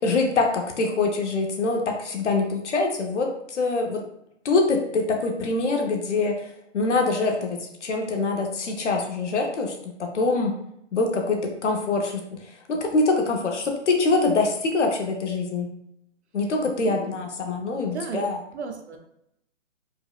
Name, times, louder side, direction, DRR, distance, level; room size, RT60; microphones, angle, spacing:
voice 1, 0.0-4.0 4.4-6.4 6.7-10.5 10.9-15.7 16.3-18.4, left 3 dB, 70° left, 2 dB, 0.9 m, -24 dB
voice 2, 16.8-17.2 17.8-18.2 18.5-19.0, right 5 dB, 65° right, 4 dB, 0.7 m, -34 dB
4.5 x 2.1 x 2.4 m, 0.77 s
hypercardioid pair, 175°, 37 cm